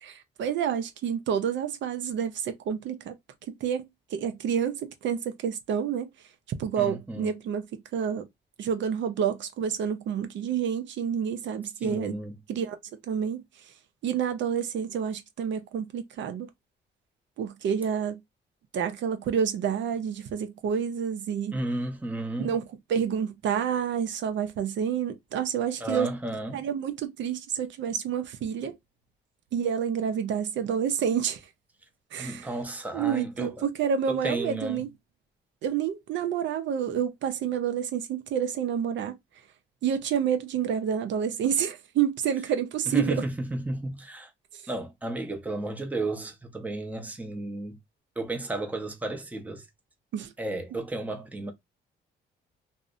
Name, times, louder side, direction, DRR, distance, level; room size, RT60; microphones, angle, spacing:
voice 1, 0.0-3.2 3.5-6.1 6.6-8.3 8.6-12.2 12.5-12.8 13.1-13.7 14.0-16.5 17.4-18.2 18.7-21.6 22.4-22.6 22.9-26.1 26.5-28.8 29.5-31.4 32.1-32.5 32.9-34.9 35.6-39.2 39.8-43.2 44.5-44.6 50.1-50.3, right 8 dB, 70° right, 0.5 m, -29 dB
voice 2, 6.8-7.3 11.8-12.3 21.5-22.5 25.8-26.7 32.2-33.6 34.1-34.9 42.9-44.3 44.7-47.8 48.2-49.7 50.4-51.5, right 2 dB, 10° right, 0.6 m, -33 dB
2.6 x 2.0 x 2.5 m
cardioid pair, 90°, 20 cm